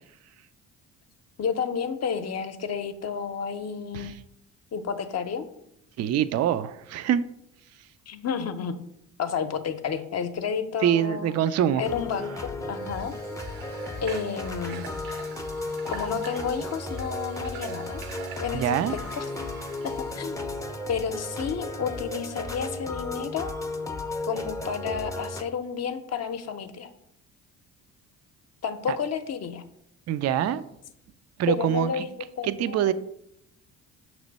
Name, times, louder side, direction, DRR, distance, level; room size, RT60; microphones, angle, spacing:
voice 1, 1.4-4.2 4.7-5.5 8.1-8.7 9.2-11.3 11.8-13.1 14.0-14.9 15.9-18.0 18.4-19.2 19.8-20.4 20.9-23.5 24.3-26.9 28.6-29.6 31.5-32.9, left 6 dB, 45° left, 9 dB, 0.7 m, -31 dB
voice 2, 6.0-7.2 10.8-11.8 18.5-18.9 28.9-29.0 30.1-30.6 31.4-32.1 32.4-32.9, right 10 dB, 45° right, 13 dB, 0.4 m, -24 dB
sound 1, 11.8-25.4, left 2 dB, 10° left, 0.6 m, -34 dB
Water / Water tap faucet, 12.7-20.3, right 7 dB, 65° right, 0.8 m, -44 dB
5.9 x 3.1 x 5.2 m, 0.77 s
supercardioid pair, 65°, 37 cm